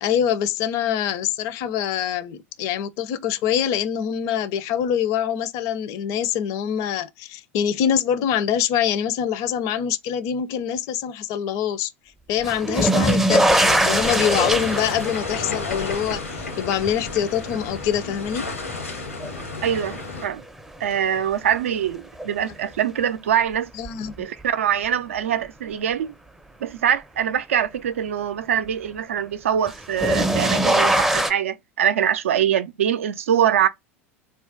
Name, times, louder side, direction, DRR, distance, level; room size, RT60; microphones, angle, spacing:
voice 1, 0.0-11.9 12.3-18.5 23.7-24.3, left 9 dB, 50° left, 0.5 m, -24 dB
sound 1, 12.4-19.5 19.9-20.6 22.2-22.3 23.8-23.9 29.7-31.3, right 1 dB, 5° right, 0.4 m, -22 dB
sound 2, 13.5-20.3, left 3 dB, 90° left, 0.9 m, -32 dB
voice 2, 19.6-20.4 20.8-23.7 24.2-26.1 26.6-33.7, right 9 dB, 75° right, 0.4 m, -23 dB
2.4 x 2.1 x 3.8 m
figure-of-eight pair, 80°, 7 cm